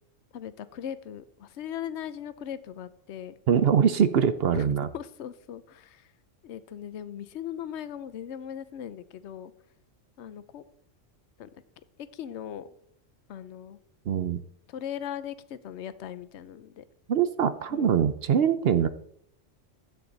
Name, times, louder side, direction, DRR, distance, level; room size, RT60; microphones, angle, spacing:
voice 1, 0.3-3.3 4.5-4.6 4.9-6.1 6.4-9.5 10.2-10.6 11.4-11.5 12.1-12.7 13.3-13.8 14.7-16.8 17.7-17.9, left 9 dB, 70° left, 14 dB, 1.0 m, -39 dB
voice 2, 3.5-4.9 14.1-14.4 17.1-18.9, right 8 dB, 60° right, 12 dB, 0.8 m, -23 dB
13.5 x 8.7 x 4.0 m, 0.71 s
omnidirectional pair, 1.3 m